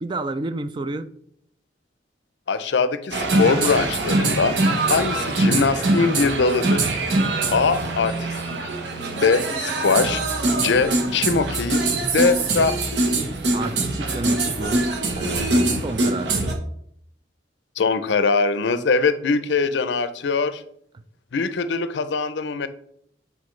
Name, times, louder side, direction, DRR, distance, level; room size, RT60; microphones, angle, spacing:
voice 1, 0.0-1.1 7.5-7.9 13.5-16.4 20.9-21.0, right 2 dB, 25° right, 0.3 m, -31 dB
voice 2, 2.5-4.6 4.9-6.9 7.5-8.6 9.1-10.2 10.5-11.8 12.1-13.0 17.8-20.6 21.3-22.7, left 4 dB, 80° left, 0.5 m, -22 dB
sound 1, 3.1-16.5, right 2 dB, 75° right, 1.0 m, -23 dB
Piano, 3.3-5.1 5.4-5.5, left 5 dB, 10° left, 0.7 m, -43 dB
8.2 x 4.1 x 3.2 m
head